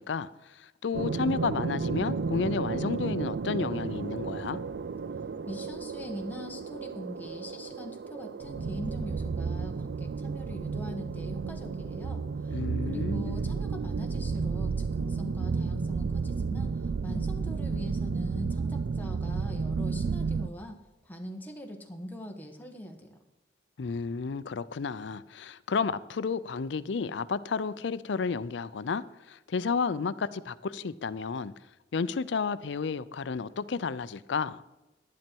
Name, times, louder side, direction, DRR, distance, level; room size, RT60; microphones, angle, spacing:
voice 1, 0.0-4.6 12.5-13.4 23.8-31.5 31.9-34.6, left 5 dB, 80° left, 0.5 m, -32 dB
sound 1, 0.9-20.5, right 4 dB, 65° right, 0.4 m, -32 dB
voice 2, 5.5-12.6 12.9-20.8 21.0-23.2, left 1 dB, 10° left, 1.2 m, -42 dB
11.5 x 10.5 x 4.5 m
head